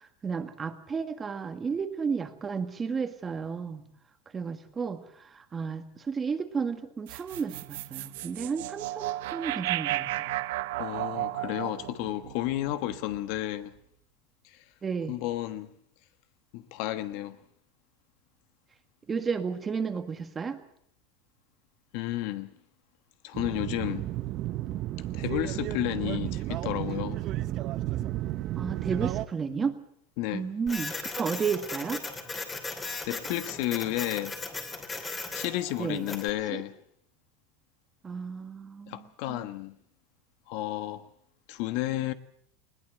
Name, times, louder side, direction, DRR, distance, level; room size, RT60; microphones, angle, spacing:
voice 1, 0.0-3.8 4.3-10.3 14.8-15.2 19.1-20.6 28.6-29.7 30.3-32.0 35.8-36.1 36.5-36.6 38.0-39.5, right 5 dB, 20° right, 1.8 m, -33 dB
sound 1, 7.1-13.4, right 16 dB, 75° right, 0.8 m, -34 dB
voice 2, 10.8-13.7 14.4-14.6 15.1-15.7 16.5-17.4 21.9-22.5 23.2-24.1 25.1-27.2 30.2-30.5 33.1-34.3 35.3-36.7 38.9-39.8 40.5-41.0 41.5-42.1, left 15 dB, 60° left, 1.3 m, -32 dB
sound 2, 23.3-29.2, right 14 dB, 40° right, 0.8 m, -32 dB
Printer, 30.7-36.3, left 3 dB, 15° left, 3.0 m, -37 dB
20.5 x 18.0 x 7.8 m
supercardioid pair, 140°, 0 cm